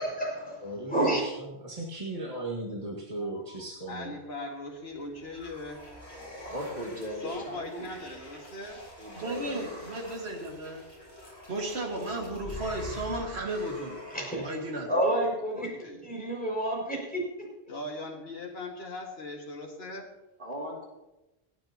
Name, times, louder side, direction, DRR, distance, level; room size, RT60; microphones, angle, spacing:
voice 1, 0.0-0.6 0.9-1.2 14.1-14.5 14.9-15.7 16.0-17.3, right 1 dB, 10° left, -3 dB, 5.6 m, -29 dB
voice 2, 0.6-4.2, right 2 dB, 35° right, -3 dB, 1.9 m, -37 dB
voice 3, 3.2-5.9 7.2-8.9 14.9-15.2 15.5-16.0 17.7-20.1, left 2 dB, 70° left, -1 dB, 2.1 m, -40 dB
sound 1, 4.7-14.7, left 1 dB, 50° left, 5.7 m, -46 dB
voice 4, 6.4-7.9 9.0-9.6 20.4-20.9, equal, 50° right, -3 dB, 3.3 m, -38 dB
voice 5, 9.1-10.8 11.5-14.0 14.4-14.9, right 1 dB, 80° right, 1 dB, 2.2 m, -34 dB
28.5 x 9.6 x 2.9 m, 0.98 s
omnidirectional pair, 1.1 m